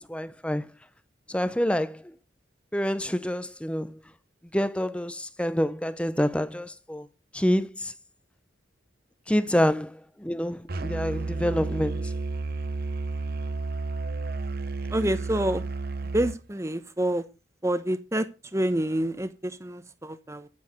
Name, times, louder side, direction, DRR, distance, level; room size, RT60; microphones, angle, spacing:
voice 1, 0.1-0.7 1.3-2.0 2.7-4.0 4.5-7.1 7.3-7.9 9.3-12.1, equal, 5° left, 0.7 m, -27 dB
Musical instrument, 10.7-16.4, right 3 dB, 50° right, 0.8 m, -31 dB
voice 2, 14.9-15.6 16.1-17.2 17.6-20.5, right 1 dB, 15° right, 1.0 m, -27 dB
10.5 x 9.6 x 5.1 m
head